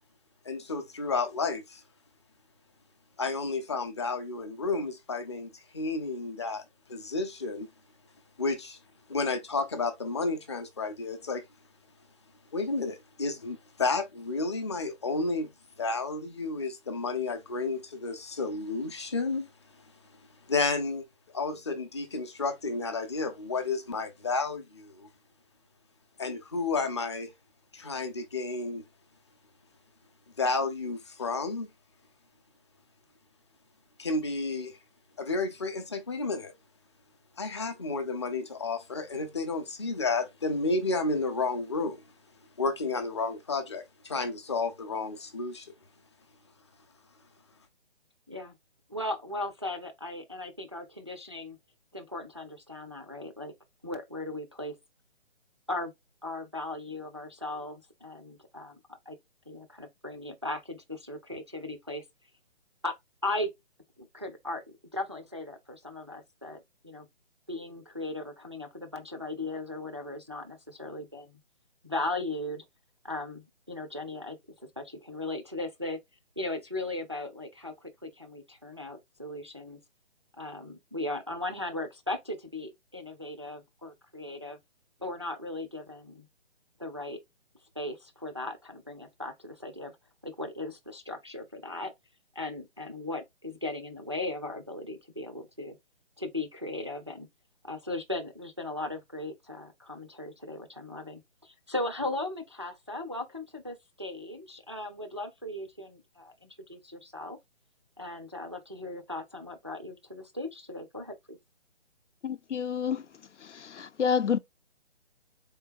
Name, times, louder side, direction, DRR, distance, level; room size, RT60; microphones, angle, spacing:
voice 1, 0.5-1.8 3.2-6.6 6.9-7.7 8.4-8.8 9.1-11.5 12.5-15.5 15.8-19.4 20.5-21.1 21.3-25.1 26.2-27.3 27.7-28.8 30.4-31.7 34.0-34.8 35.2-36.5 37.4-42.0 42.6-45.7, left 3 dB, 25° left, 0.5 m, -31 dB
voice 2, 48.9-51.6 51.9-53.5 53.8-54.7 55.7-55.9 56.2-58.8 59.1-59.2 59.5-62.0 62.8-63.0 63.2-63.5 64.0-64.6 64.9-67.1 67.5-71.4 71.8-72.6 73.0-74.4 74.8-76.0 76.4-79.8 80.4-84.6 85.0-86.3 86.8-87.2 87.8-89.9 90.2-91.9 92.4-95.8 96.2-97.3 97.6-107.4 108.0-111.4, left 2 dB, 25° right, 0.3 m, -37 dB
voice 3, 112.2-113.0 113.4-114.4, left 7 dB, 90° left, 0.6 m, -29 dB
3.8 x 3.3 x 2.5 m
figure-of-eight pair, 155°, 35 cm